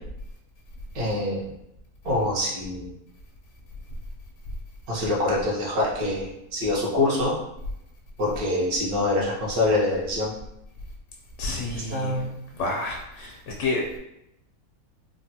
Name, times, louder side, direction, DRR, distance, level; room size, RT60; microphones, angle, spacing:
voice 1, 0.9-1.5 2.0-2.9 4.9-7.3 8.2-10.3 11.7-12.3, left 2 dB, 75° right, -4 dB, 1.3 m, -25 dB
voice 2, 11.4-12.1 12.5-13.8, left 2 dB, 75° left, -2 dB, 1.1 m, -29 dB
3.5 x 2.1 x 2.7 m, 0.84 s
omnidirectional pair, 1.6 m